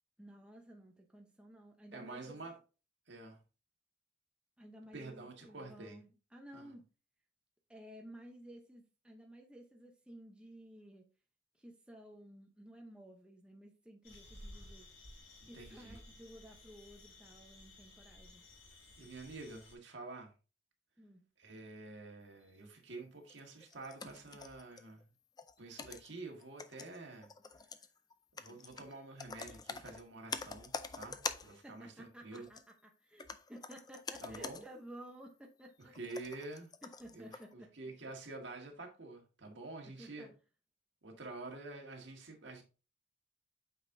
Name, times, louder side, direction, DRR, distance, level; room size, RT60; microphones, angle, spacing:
voice 1, 0.2-2.4 4.6-6.8 7.7-11.1 11.6-14.9 15.4-18.4 21.0-21.2 31.6-35.9 36.8-37.7 39.8-40.3, right 1 dB, 5° right, 0.8 m, -54 dB
voice 2, 1.9-2.5 3.1-3.4 4.9-6.0 6.5-6.7 15.5-16.0 19.0-20.3 21.4-25.1 25.6-27.3 28.3-32.5 34.2-34.6 35.9-36.7 37.1-40.3 41.0-42.6, right 2 dB, 65° right, 1.7 m, -48 dB
sound 1, 14.0-19.7, left 1 dB, 85° left, 3.5 m, -56 dB
sound 2, 23.3-25.0 25.4-31.6 32.3-32.7 33.2-34.7 35.0-35.1 35.7-37.5, left 5 dB, 20° left, 0.4 m, -46 dB
8.7 x 5.1 x 2.7 m
head